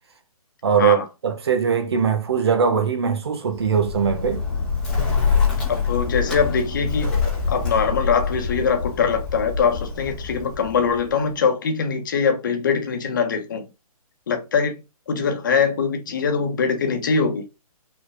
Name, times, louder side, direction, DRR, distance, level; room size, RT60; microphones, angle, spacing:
voice 1, 0.6-4.4, right 6 dB, 45° right, 1.5 m, -21 dB
Bird, 3.5-11.3, left 5 dB, 5° left, 1.5 m, -25 dB
voice 2, 5.7-7.1 7.5-13.6 14.3-14.8 15.1-17.4, left 6 dB, 30° left, 1.6 m, -22 dB
6.0 x 4.3 x 4.9 m
hypercardioid pair, 175°, 19 cm